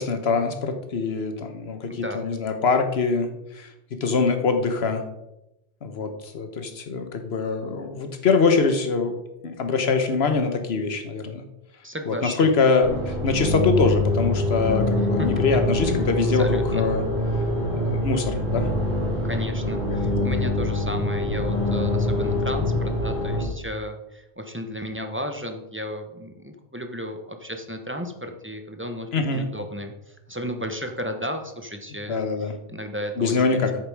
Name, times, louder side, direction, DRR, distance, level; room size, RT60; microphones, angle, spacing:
voice 1, 0.0-3.7 4.0-5.0 5.8-9.2 9.4-11.4 12.1-17.0 17.7-18.7 19.9-20.0 29.1-29.5 32.1-32.5 33.2-33.8, left 4 dB, 70° left, 7 dB, 1.3 m, -23 dB
voice 2, 1.9-2.2 11.8-12.5 15.2-15.3 15.8-16.9 19.2-32.2 32.7-33.6, equal, 15° right, 5 dB, 0.8 m, -34 dB
sound 1, 12.8-23.4, left 1 dB, 75° right, 3.6 m, -24 dB
8.4 x 7.0 x 4.8 m, 0.90 s
omnidirectional pair, 1.1 m